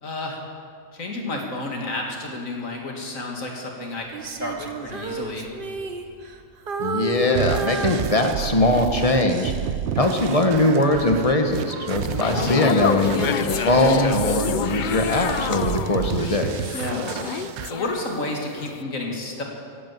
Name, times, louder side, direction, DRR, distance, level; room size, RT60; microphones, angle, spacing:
voice 1, 0.0-0.4 0.9-5.5 16.7-17.1 17.7-19.4, left 2 dB, 80° left, 0 dB, 2.5 m, -31 dB
Female singing, 4.1-6.4 6.7-8.7 9.2-9.5, right 4 dB, 45° right, 1.1 m, -31 dB
voice 2, 6.8-9.5 9.9-16.5, left 1 dB, 30° left, 4 dB, 1.2 m, -21 dB
sound 1, 7.3-17.7, right 10 dB, 65° right, 0.8 m, -31 dB
sound 2, 12.0-18.3 18.6-18.8, left 7 dB, 55° left, 0.5 m, -27 dB
16.5 x 8.6 x 7.6 m, 2.2 s
omnidirectional pair, 1.4 m